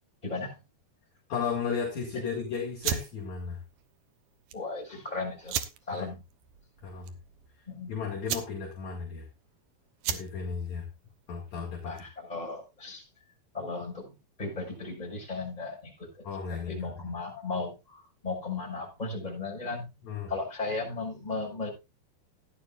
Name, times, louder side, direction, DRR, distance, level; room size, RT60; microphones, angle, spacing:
voice 1, 0.2-0.6 4.5-5.6 5.9-6.2 7.7-7.9 11.8-13.1 13.5-19.9 20.3-21.7, left 3 dB, 10° left, -3 dB, 6.2 m, -36 dB
voice 2, 1.3-3.6 5.9-6.1 6.8-7.1 7.9-9.2 10.1-10.9 11.3-11.9 16.2-17.1 20.0-20.3, left 6 dB, 50° left, -2 dB, 3.2 m, -34 dB
sound 1, 2.8-12.3, right 10 dB, 70° right, 2.0 m, -38 dB
16.5 x 11.0 x 2.5 m, 0.25 s
omnidirectional pair, 4.7 m